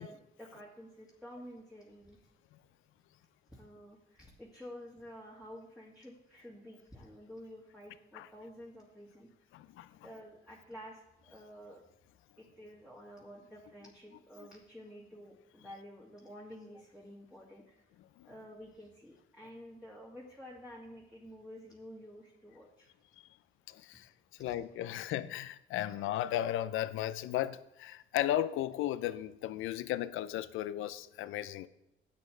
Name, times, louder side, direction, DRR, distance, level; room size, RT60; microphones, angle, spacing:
voice 1, 0.0-2.2 3.5-9.3 10.0-11.0 11.3-11.8 12.4-17.8 18.2-22.9 24.4-24.5, equal, 5° right, 2.4 m, -50 dB
voice 2, 9.5-10.1 18.0-18.3 23.2-23.3 23.7-24.1 24.4-31.7, left 12 dB, 90° left, 0.6 m, -35 dB
13.0 x 8.7 x 3.3 m
cardioid pair, 90°, 20 cm